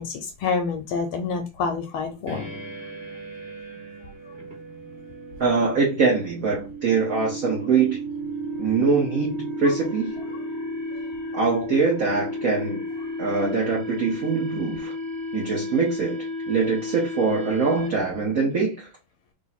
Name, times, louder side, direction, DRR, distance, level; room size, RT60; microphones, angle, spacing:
voice 1, 0.0-2.6, left 5 dB, 80° left, 1.5 m, -28 dB
sound 1, 2.3-18.2, left 1 dB, 25° right, 1.4 m, -33 dB
voice 2, 5.4-8.0 8.6-10.1 11.3-12.8 13.2-14.9 15.3-18.9, right 4 dB, 50° right, 1.1 m, -23 dB
3.6 x 2.7 x 4.0 m
omnidirectional pair, 2.3 m